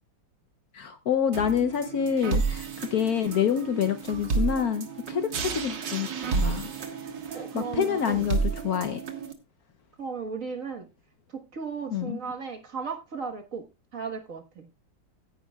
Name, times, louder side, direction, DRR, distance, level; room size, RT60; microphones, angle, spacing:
voice 1, 0.7-6.7 7.3-9.0 11.9-12.2, left 8 dB, 60° left, 1.0 m, -27 dB
sound 1, 1.3-9.3, right 4 dB, 70° right, 2.1 m, -31 dB
voice 2, 7.0-8.2 10.0-10.9 11.3-13.7 13.9-14.7, right 5 dB, 45° right, 1.6 m, -36 dB
16.0 x 10.0 x 2.3 m
omnidirectional pair, 2.1 m